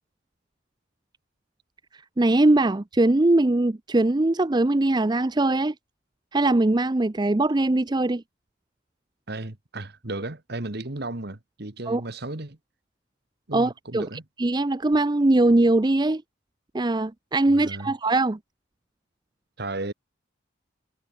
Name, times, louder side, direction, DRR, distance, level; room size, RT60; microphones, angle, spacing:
voice 1, 2.2-5.7 6.3-8.2 11.9-12.0 13.5-16.2 16.7-18.4, right 2 dB, 20° right, 0.5 m, -21 dB
voice 2, 9.3-12.6 13.5-14.2 17.5-17.9 19.6-19.9, right 2 dB, 50° right, 1.6 m, -34 dB
head